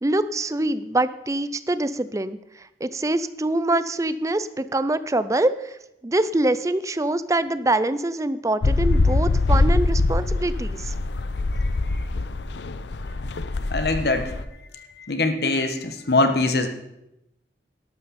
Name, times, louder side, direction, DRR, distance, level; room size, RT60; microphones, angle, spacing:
voice 1, 0.0-5.8 6.0-10.9, right 2 dB, 20° right, 13 dB, 0.5 m, -24 dB
sound 1, 8.6-14.4, left 2 dB, 75° left, 0.6 m, -23 dB
voice 2, 13.7-14.3 14.7-16.7, left 2 dB, 60° left, 7 dB, 1.3 m, -23 dB
12.5 x 12.0 x 4.2 m, 0.87 s
head